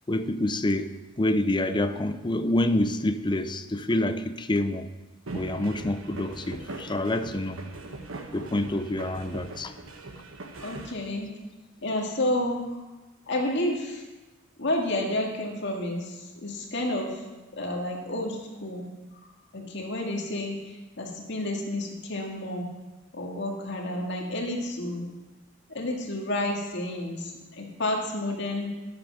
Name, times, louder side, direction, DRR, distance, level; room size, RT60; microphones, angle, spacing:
voice 1, 0.1-4.9 5.3-7.6 8.3-9.7, left 1 dB, 25° left, 10 dB, 0.6 m, -27 dB
sound 1, 5.3-10.9, right 2 dB, 85° right, 1.3 m, -40 dB
voice 2, 10.6-11.3 11.8-12.8 13.3-14.0 14.6-17.2 17.5-18.9 19.5-22.7 23.1-25.1 25.7-28.7, left 1 dB, 60° left, 0 dB, 2.1 m, -30 dB
11.5 x 8.5 x 6.2 m, 1.1 s
head